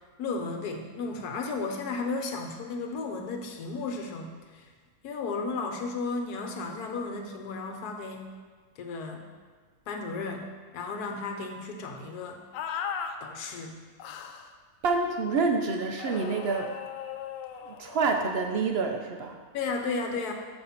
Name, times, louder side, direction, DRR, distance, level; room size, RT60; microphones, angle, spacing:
voice 1, 0.2-4.7 5.0-8.4 8.8-9.3 9.9-12.5 13.2-13.8 19.5-20.3, left 3 dB, 70° left, 4 dB, 1.4 m, -34 dB
sound 1, 12.5-13.2 14.0-14.5 16.0-18.3, left 8 dB, 90° left, 1.3 m, -37 dB
voice 2, 14.8-16.7 17.7-19.4, right 4 dB, 75° right, 3 dB, 0.5 m, -27 dB
7.1 x 5.5 x 5.7 m, 1.5 s
omnidirectional pair, 1.8 m